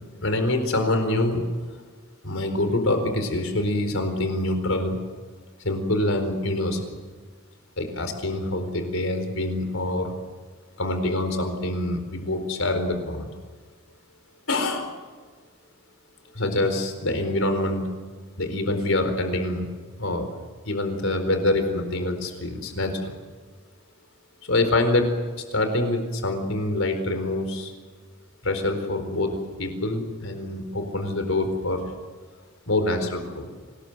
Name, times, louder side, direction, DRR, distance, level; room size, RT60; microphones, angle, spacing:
voice 1, 0.2-1.4 2.2-5.0 5.6-6.8 7.8-10.1 10.8-13.3 14.5-14.9 16.3-17.9 18.4-19.7 20.0-20.3 20.6-23.1 24.4-25.1 25.5-27.7 28.4-31.9 32.7-33.5, left 2 dB, 75° left, 7 dB, 4.4 m, -25 dB
26.0 x 20.0 x 8.0 m, 1.5 s
head